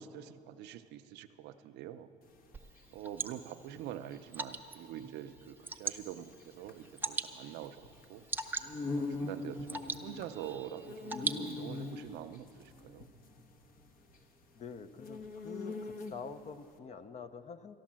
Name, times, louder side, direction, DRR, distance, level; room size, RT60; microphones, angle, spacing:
voice 1, 0.0-2.1 2.9-8.2 8.9-13.1, right 11 dB, 90° right, 10 dB, 0.6 m, -45 dB
sound 1, 2.3-16.5, left 3 dB, 55° left, 1.2 m, -43 dB
Water / Drip, 2.5-11.9, right 3 dB, 10° right, 0.6 m, -42 dB
voice 2, 14.5-17.8, left 6 dB, 40° left, 12 dB, 0.6 m, -46 dB
13.0 x 11.5 x 7.5 m, 2.8 s
cardioid pair, 110°, 17 cm